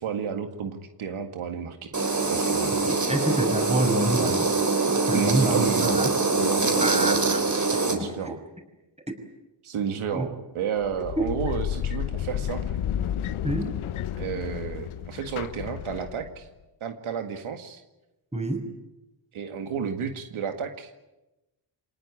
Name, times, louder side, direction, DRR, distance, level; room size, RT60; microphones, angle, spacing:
voice 1, 0.0-1.9 2.2-2.9 5.1-6.1 6.4-7.2 7.9-8.4 9.6-12.8 14.2-16.5 16.8-17.8 19.3-21.0, right 7 dB, 85° right, 7 dB, 2.1 m, -32 dB
sound 1, 1.9-7.9, right 3 dB, 35° right, 4.4 m, -24 dB
voice 2, 2.7-4.5 4.9-6.1 6.8-7.4 7.9-8.4 10.1-10.3 11.2-11.3 13.4-13.7 18.3-18.6, right 1 dB, 15° right, 6 dB, 5.7 m, -27 dB
sound 2, 10.8-16.4, left 10 dB, 90° left, 1.0 m, -31 dB
26.0 x 19.0 x 9.9 m, 1.0 s
cardioid pair, 65°, 48 cm